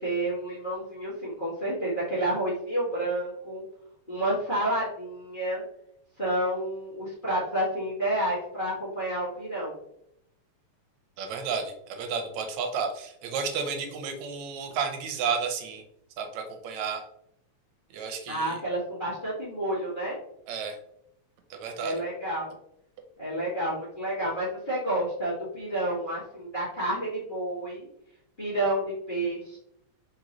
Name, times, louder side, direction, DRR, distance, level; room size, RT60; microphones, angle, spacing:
voice 1, 0.0-3.6 4.1-5.6 6.2-9.8 18.3-20.1 21.8-22.5 23.2-27.9 28.4-29.6, right 1 dB, 25° left, -9 dB, 1.3 m, -30 dB
voice 2, 11.2-15.8 16.2-17.0 17.9-18.6 20.5-20.8 21.5-22.0, right 5 dB, 75° right, 5 dB, 1.9 m, -32 dB
4.4 x 3.9 x 3.0 m, 0.74 s
omnidirectional pair, 3.4 m